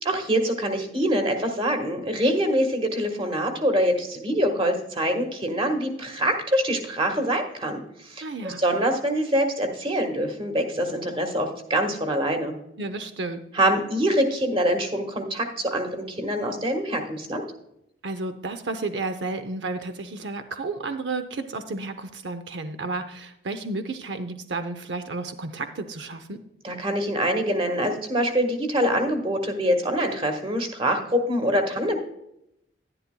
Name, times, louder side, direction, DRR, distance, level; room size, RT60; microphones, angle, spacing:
voice 1, 0.0-12.5 13.5-17.4 26.6-32.0, equal, 30° right, 5 dB, 1.5 m, -25 dB
voice 2, 8.2-8.6 12.8-13.4 18.0-26.4, right 3 dB, 85° right, 9 dB, 0.6 m, -32 dB
11.0 x 11.0 x 2.2 m, 0.78 s
head